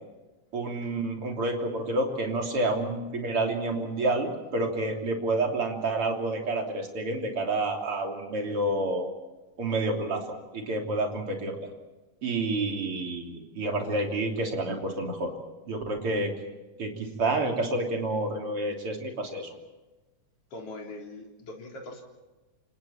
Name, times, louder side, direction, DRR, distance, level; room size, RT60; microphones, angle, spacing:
voice 1, 0.5-9.1 9.6-10.2 10.5-11.6 12.2-15.3 15.7-16.3 16.8-19.5, right 2 dB, 40° right, 1 dB, 3.9 m, -29 dB
voice 2, 20.5-22.0, left 2 dB, 45° left, 0 dB, 4.8 m, -41 dB
29.0 x 27.0 x 4.4 m, 1.1 s
omnidirectional pair, 3.8 m